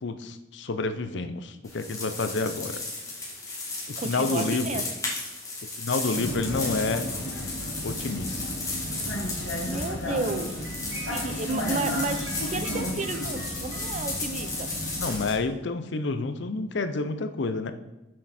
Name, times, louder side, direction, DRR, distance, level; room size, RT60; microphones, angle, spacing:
voice 1, 0.0-2.8 3.9-4.8 5.8-7.1 7.8-8.4 15.0-17.7, left 3 dB, 65° left, 10 dB, 0.6 m, -29 dB
sound 1, 1.6-15.3, left 2 dB, 20° left, 2.0 m, -35 dB
voice 2, 4.0-4.9 9.6-10.7 11.1-14.7, right 3 dB, 40° right, 10 dB, 0.5 m, -32 dB
Vehicle, 6.1-15.3, equal, 85° left, 1.4 m, -34 dB
sound 2, 9.3-15.1, right 2 dB, 70° right, 1.8 m, -46 dB
7.4 x 6.5 x 4.2 m, 1.0 s
head